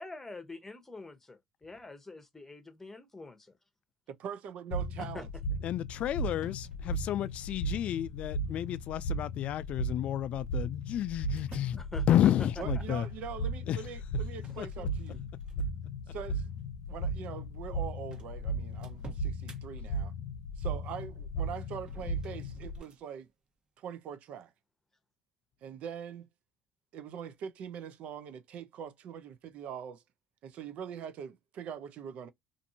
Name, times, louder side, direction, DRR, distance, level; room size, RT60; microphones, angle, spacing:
voice 1, 0.0-3.6 5.1-5.2 11.8-12.3, left 3 dB, 15° left, 0.9 m, -45 dB
voice 2, 4.1-5.3 12.6-15.2 16.1-16.5 16.9-20.1 20.6-23.3 23.8-24.5 25.6-26.3 26.9-30.0 30.4-32.3, right 8 dB, 60° right, 0.5 m, -42 dB
sound 1, 4.7-22.8, right 1 dB, 85° left, 0.7 m, -36 dB
voice 3, 5.6-13.1 13.7-13.8 14.6-14.9, left 11 dB, 55° left, 0.3 m, -31 dB
sound 2, 6.3-7.8 8.4-8.9 10.0-11.9 14.3-15.9 16.4-16.6 17.4-17.5 17.7-17.8 18.1-19.6 21.7-23.0, right 3 dB, 40° right, 1.1 m, -52 dB
2.6 x 2.6 x 2.7 m
supercardioid pair, 85°, 3 cm